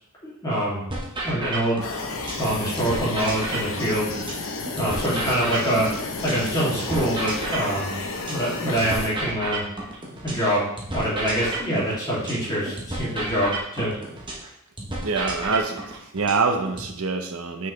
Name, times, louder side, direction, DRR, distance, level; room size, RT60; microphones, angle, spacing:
voice 1, 0.2-0.8 1.2-1.8 2.4-4.1 4.8-5.9 6.2-7.9 8.3-9.6 10.2-10.7 10.9-13.9, right 1 dB, 20° left, -8 dB, 2.6 m, -25 dB
sound 1, 0.9-2.5 2.8-6.5 6.8-10.5 10.8-14.5 14.8-16.9, right 2 dB, 25° right, 1.2 m, -32 dB
sound 2, 1.8-9.1, left 3 dB, 70° left, 0.8 m, -32 dB
voice 2, 15.0-17.7, right 4 dB, 75° right, 5 dB, 0.8 m, -25 dB
5.9 x 5.4 x 3.3 m, 0.76 s
head